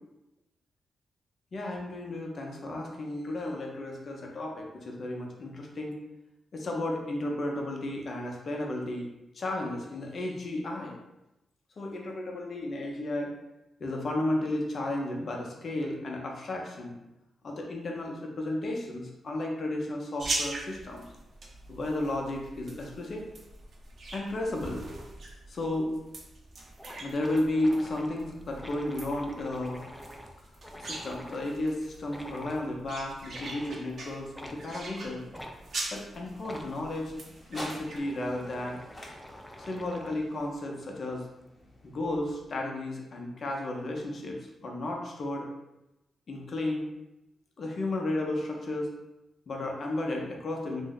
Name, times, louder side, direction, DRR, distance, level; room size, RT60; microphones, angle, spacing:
voice 1, 1.5-5.9 6.5-9.1 9.3-10.9 11.8-13.3 13.8-16.9 17.4-21.0 21.7-23.2 24.1-24.8 25.5-25.9 27.0-29.8 30.8-35.2 35.9-37.1 37.5-38.8 39.6-41.2 41.8-45.5 46.3-46.8 47.6-48.9 49.5-50.8, left 1 dB, 60° left, 0 dB, 0.7 m, -33 dB
sound 1, 20.2-38.0, right 2 dB, 60° right, 0.6 m, -42 dB
sound 2, 26.2-26.3 26.5-26.6 26.8-31.6 32.1-32.6 33.3-33.8 34.3-34.6 35.3-35.6 36.4-36.7 37.5-40.3, equal, 5° left, 0.4 m, -46 dB
sound 3, 34.7-42.8, left 1 dB, 30° left, 0.8 m, -49 dB
2.6 x 2.1 x 3.8 m, 0.94 s
supercardioid pair, 55°, 0 cm